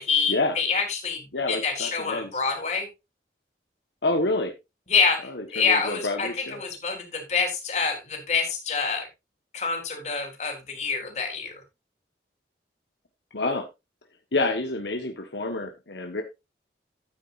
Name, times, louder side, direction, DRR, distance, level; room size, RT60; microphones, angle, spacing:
voice 1, 0.0-2.9 4.9-9.1 9.5-11.5, left 5 dB, 40° left, 3 dB, 3.7 m, -26 dB
voice 2, 1.3-2.3 4.0-4.5 5.3-6.6 13.3-13.7 14.3-16.2, left 2 dB, 75° left, 4 dB, 1.4 m, -28 dB
13.0 x 9.2 x 2.6 m, 0.23 s
head